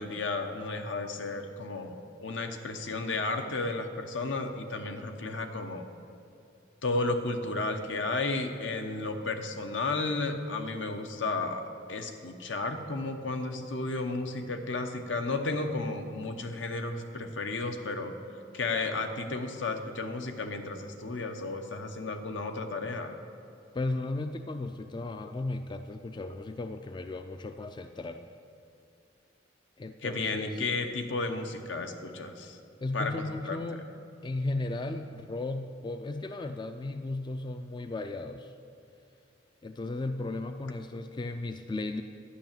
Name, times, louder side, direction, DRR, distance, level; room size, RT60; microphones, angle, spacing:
voice 1, 0.0-5.9 6.8-18.1 18.5-23.2 30.0-32.6 32.9-33.1 33.4-33.6, left 3 dB, 80° left, 6 dB, 1.0 m, -33 dB
voice 2, 23.7-28.3 29.8-30.6 32.8-33.9 34.2-38.5 39.6-42.0, left 2 dB, 25° left, 8 dB, 0.3 m, -35 dB
11.5 x 5.9 x 8.9 m, 2.6 s
head